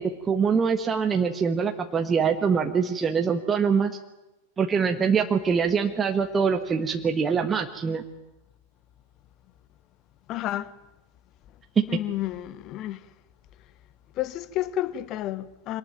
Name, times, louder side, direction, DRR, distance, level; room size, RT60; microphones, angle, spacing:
voice 1, 0.0-3.9 4.6-8.0 11.8-11.9, right 6 dB, 20° right, 1.4 m, -24 dB
voice 2, 10.3-10.7 11.9-13.0 14.2-15.8, left 13 dB, 35° left, 1.1 m, -30 dB
24.0 x 19.0 x 9.1 m
figure-of-eight pair, 90°, 0 cm